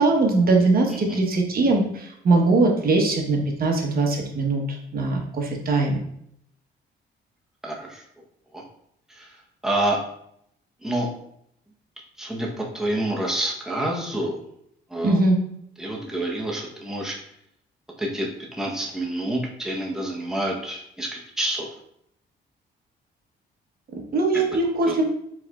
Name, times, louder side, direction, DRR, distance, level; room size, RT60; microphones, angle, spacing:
voice 1, 0.0-6.0 15.0-15.4 24.1-25.1, right 3 dB, 50° right, 1 dB, 1.1 m, -21 dB
voice 2, 7.6-8.0 8.5-8.6 9.1-9.4 9.6-10.0 10.8-11.1 12.2-14.4 14.9-15.2 15.8-17.2 18.0-21.7 24.8-24.9, right 1 dB, ahead, -2 dB, 0.9 m, -28 dB
4.7 x 4.0 x 2.4 m, 0.72 s
cardioid pair, 90°, 20 cm